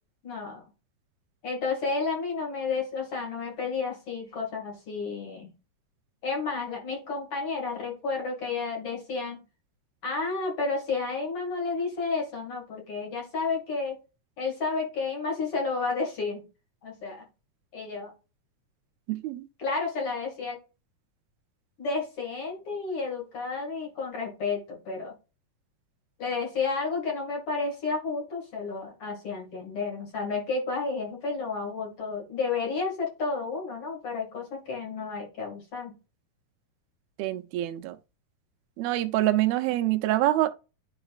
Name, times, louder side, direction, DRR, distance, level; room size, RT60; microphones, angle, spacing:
voice 1, 0.2-0.7 1.4-5.5 6.2-9.4 10.0-14.0 14.4-16.4 16.8-17.2 17.7-18.1 19.6-20.6 21.8-25.1 26.2-36.0, left 4 dB, 45° left, 2.6 m, -31 dB
voice 2, 19.1-19.5 37.2-38.0 38.8-40.5, right 15 dB, 85° right, 2.5 m, -25 dB
11.0 x 3.9 x 2.4 m
omnidirectional pair, 4.2 m